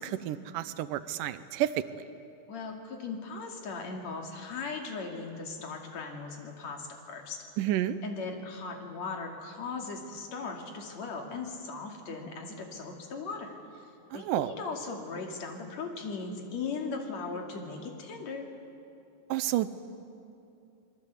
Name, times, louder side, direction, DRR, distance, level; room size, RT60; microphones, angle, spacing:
voice 1, 0.0-2.0 7.6-8.0 14.1-14.5 19.3-19.7, right 13 dB, 85° right, 13 dB, 2.4 m, -30 dB
voice 2, 2.5-7.4 8.0-13.6 14.1-18.5, left 4 dB, 55° left, 2 dB, 3.5 m, -38 dB
27.5 x 21.5 x 8.3 m, 2.6 s
omnidirectional pair, 3.8 m